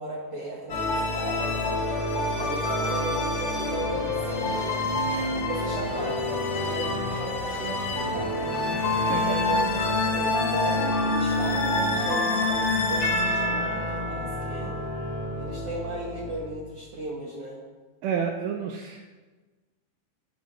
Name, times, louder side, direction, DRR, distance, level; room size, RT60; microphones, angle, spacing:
voice 1, 0.0-1.7 2.4-4.7 5.5-6.2 6.6-8.5 9.1-14.7 15.4-17.6, right 2 dB, 65° right, -5 dB, 2.0 m, -36 dB
sound 1, 0.7-16.5, left 1 dB, 60° left, 1.8 m, -27 dB
sound 2, 3.4-10.1, equal, 40° left, 1.6 m, -42 dB
sound 3, 8.3-15.7, left 6 dB, 90° left, 3.1 m, -34 dB
voice 2, 9.0-9.4 18.0-19.1, right 7 dB, 85° right, 2 dB, 2.1 m, -30 dB
15.5 x 5.5 x 3.1 m, 1.3 s
omnidirectional pair, 5.0 m